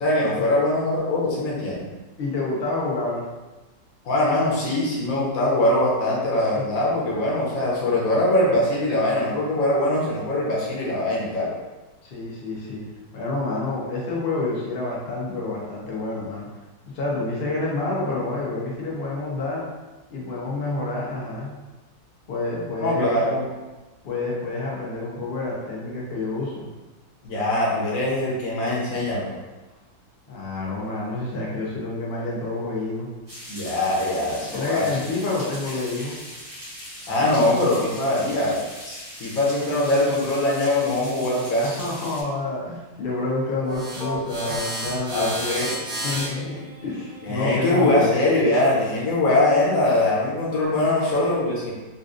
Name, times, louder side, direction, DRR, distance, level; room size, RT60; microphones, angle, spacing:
voice 1, 0.0-1.9 4.0-11.5 22.8-23.4 27.2-29.4 33.5-34.9 37.1-38.6 38.8-41.7 45.1-45.7 47.2-51.7, left 1 dB, 55° left, -5 dB, 1.1 m, -22 dB
voice 2, 2.2-3.2 6.6-6.7 12.0-12.8 13.1-16.5 16.9-19.6 20.1-21.5 22.3-23.1 24.0-26.7 30.3-33.1 34.5-36.2 41.6-45.3 46.0-48.1 51.0-51.2, left 2 dB, 75° left, -5 dB, 0.5 m, -28 dB
sound 1, 33.3-42.2, equal, 35° right, 0.9 m, -40 dB
sound 2, 43.6-48.8, right 1 dB, 85° right, 0.4 m, -33 dB
3.9 x 2.4 x 2.5 m, 1.2 s
omnidirectional pair, 2.0 m